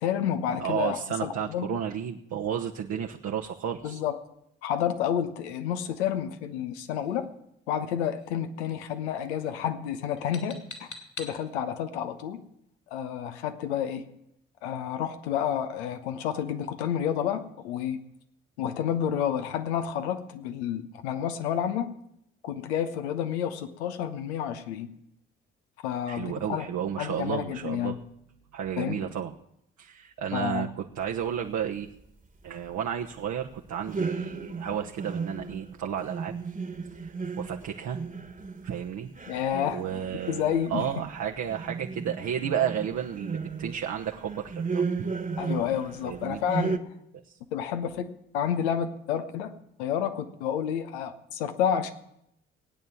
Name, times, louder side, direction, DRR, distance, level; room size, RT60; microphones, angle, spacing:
voice 1, 0.0-1.7 3.8-4.2 4.6-7.3 7.7-10.9 11.2-12.4 12.9-14.0 14.6-18.0 18.6-21.9 22.4-24.9 25.8-26.7 27.0-28.0 28.8-29.1 30.3-30.7 39.3-39.8 40.3-40.9 45.4-46.9 47.5-51.9, left 9 dB, 85° left, 9 dB, 1.1 m, -30 dB
voice 2, 0.6-4.0 26.1-27.9 28.5-29.3 29.8-31.9 32.4-36.3 37.0-38.0 38.6-39.1 39.7-40.4 40.7-44.8 46.0-46.4, right 9 dB, 60° right, 1 dB, 1.2 m, -32 dB
sound 1, 7.0-7.3 8.0-8.4 8.7-9.0 9.2-9.6 10.2-11.4, left 3 dB, 60° left, 3.3 m, -45 dB
sound 2, 33.9-46.2 46.5-46.8, right 4 dB, 25° right, 1.5 m, -34 dB
18.5 x 9.2 x 7.2 m, 0.78 s
hypercardioid pair, 45°, 32 cm